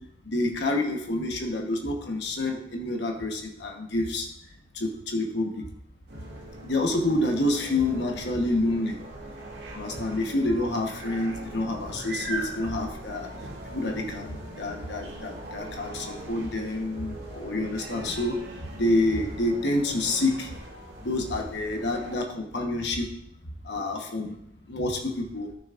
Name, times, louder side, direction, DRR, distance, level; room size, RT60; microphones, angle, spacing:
voice 1, 0.3-4.3 4.7-5.6 6.6-9.0 9.7-13.3 13.7-18.4 18.8-20.5 21.0-23.0 23.6-24.4 24.7-25.5, left 2 dB, 65° left, 2 dB, 1.2 m, -28 dB
sound 1, 6.1-22.2, right 1 dB, 60° right, 2.1 m, -42 dB
sound 2, 6.1-20.6, right 1 dB, 80° right, 1.8 m, -44 dB
14.0 x 6.1 x 2.5 m, 0.76 s
head